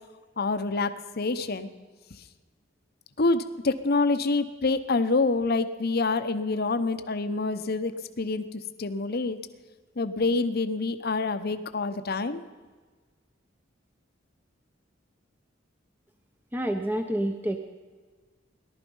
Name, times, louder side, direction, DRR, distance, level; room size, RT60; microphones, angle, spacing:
voice 1, 0.4-1.7 3.2-9.4 10.0-12.4, left 3 dB, 55° left, 10 dB, 0.8 m, -27 dB
voice 2, 16.5-17.6, right 1 dB, 10° right, 5 dB, 0.7 m, -28 dB
18.0 x 12.0 x 5.5 m, 1.4 s
head